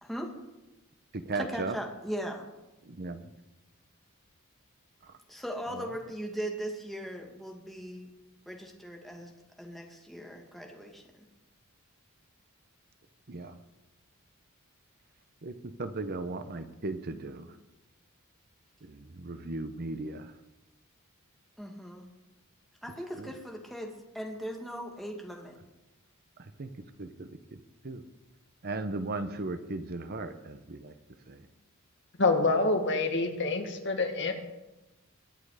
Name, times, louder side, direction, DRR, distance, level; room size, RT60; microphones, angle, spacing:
voice 1, 0.0-0.3 1.3-2.4 5.3-8.1 8.5-9.3 9.6-11.2 21.6-22.0 22.8-25.6, equal, ahead, 0 dB, 2.2 m, -39 dB
voice 2, 1.1-1.8 2.8-3.3 5.0-5.2 5.7-5.8 13.3-13.6 15.4-17.5 18.8-20.3 23.2-23.3 26.4-26.7 27.0-28.0 28.6-30.9 31.3-31.4, right 2 dB, 45° right, 10 dB, 0.9 m, -37 dB
voice 3, 32.2-34.3, left 3 dB, 55° left, 4 dB, 2.0 m, -26 dB
22.5 x 8.9 x 4.9 m, 1.0 s
head